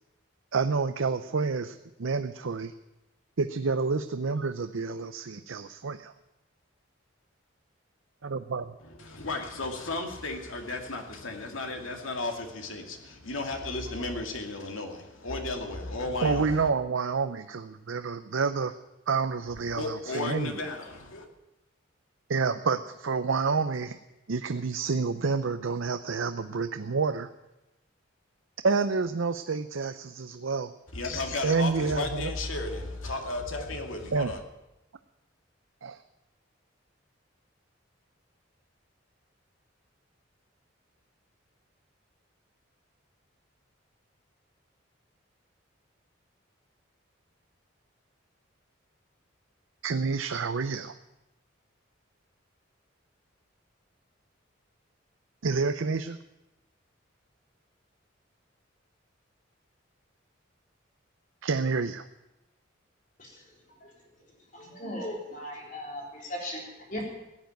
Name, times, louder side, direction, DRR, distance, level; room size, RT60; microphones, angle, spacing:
voice 1, 0.5-2.7 3.4-6.1 8.2-8.7 16.2-18.7 19.1-20.6 22.3-24.0 24.3-27.3 28.6-30.7 31.4-32.3 34.1-34.3 35.8-36.0 49.8-50.9 55.4-56.2 61.4-62.1, right 4 dB, 75° right, 0.6 m, -28 dB
voice 2, 8.8-16.6 19.6-21.3 30.9-34.4, left 2 dB, 85° left, 2.3 m, -34 dB
voice 3, 64.5-67.2, left 1 dB, 40° left, 4.0 m, -38 dB
16.5 x 9.6 x 9.1 m
head